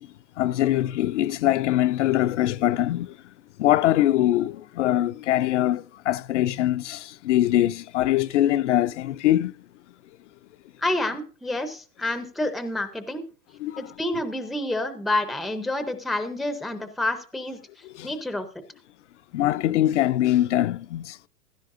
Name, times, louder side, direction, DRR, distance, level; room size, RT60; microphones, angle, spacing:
voice 1, 0.4-3.1 3.6-9.5 13.6-13.8 18.0-18.1 19.3-21.1, left 13 dB, 50° left, 0.5 m, -22 dB
voice 2, 10.8-13.2 13.8-17.6 18.0-18.5, left 1 dB, ahead, 0.5 m, -28 dB
15.5 x 12.5 x 2.5 m
hypercardioid pair, 135°, 46 cm